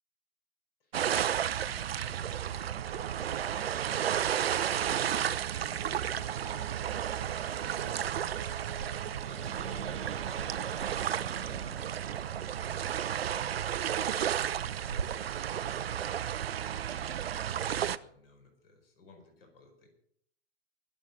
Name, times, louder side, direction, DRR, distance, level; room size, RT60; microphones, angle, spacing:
voice 1, 0.8-1.1 1.6-7.1 7.6-10.9 11.4-13.5 14.0-16.5 16.9-19.9, left 2 dB, 50° left, 4 dB, 5.1 m, -58 dB
sound 1, 0.9-18.0, right 10 dB, 55° right, 0.6 m, -33 dB
sound 2, 2.8-17.2, right 10 dB, 25° right, 1.0 m, -49 dB
Growling, 4.5-15.0, right 5 dB, 85° right, 0.8 m, -45 dB
21.5 x 8.1 x 6.1 m, 0.69 s
figure-of-eight pair, 115°, 37 cm